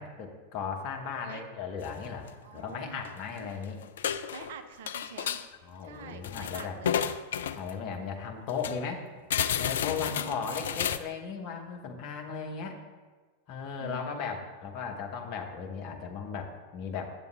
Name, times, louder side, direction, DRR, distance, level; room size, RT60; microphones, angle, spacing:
voice 1, 0.0-3.8 5.6-6.8 7.6-9.0 9.6-12.8 13.5-17.1, left 6 dB, 40° left, 2 dB, 1.0 m, -36 dB
sound 1, 1.8-1.9 2.2-2.3 3.0-3.5 3.8-4.5 4.9-5.5 6.0-7.7 8.2-8.3 8.5-8.8 9.3-11.0, left 9 dB, 60° left, 0.3 m, -31 dB
voice 2, 2.4-3.0 3.4-3.5 4.3-5.5 5.8-7.2 10.1-10.7 13.8-14.5, right 6 dB, 55° right, 7 dB, 0.6 m, -46 dB
8.2 x 6.9 x 3.3 m, 1.4 s
figure-of-eight pair, 90°, 0 cm